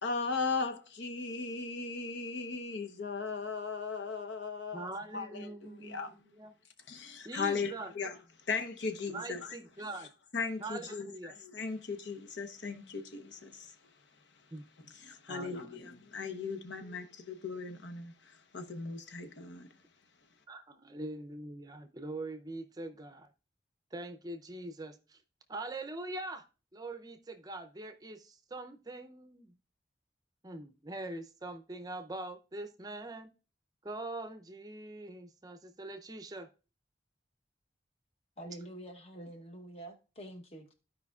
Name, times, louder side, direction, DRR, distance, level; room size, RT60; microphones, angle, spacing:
voice 1, 0.0-4.9 5.1-6.1 6.9-8.2 8.5-9.6 10.3-13.7 14.8-19.7, left 4 dB, 90° left, 0.9 m, -37 dB
voice 2, 4.7-6.1 6.4-6.5 7.2-7.9 9.1-10.1 10.6-11.3 14.5-14.7 15.3-15.9 20.5-23.3 23.9-25.2 25.5-26.4 26.7-29.5 30.4-33.3 33.8-36.5, right 2 dB, 20° right, 0.5 m, -43 dB
voice 3, 38.4-40.7, right 1 dB, 35° left, 0.9 m, -47 dB
14.0 x 5.0 x 2.3 m
head